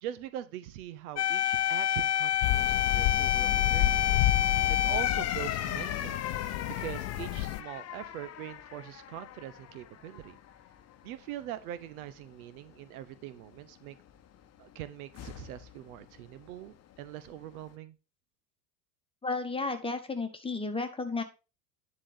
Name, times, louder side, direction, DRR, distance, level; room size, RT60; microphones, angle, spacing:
voice 1, 0.0-4.0 4.7-6.2 6.7-10.4 11.0-14.0 14.6-18.0, right 12 dB, 65° right, 15 dB, 0.9 m, -42 dB
sound 1, 1.2-9.8 10.1-10.3 15.1-15.7, left 11 dB, 30° left, 1.0 m, -30 dB
sound 2, 2.4-7.6, left 13 dB, 55° left, 0.7 m, -31 dB
voice 2, 19.2-21.2, left 3 dB, 10° left, 6 dB, 1.5 m, -33 dB
9.9 x 4.2 x 5.1 m, 0.30 s
hypercardioid pair, 85°, 48 cm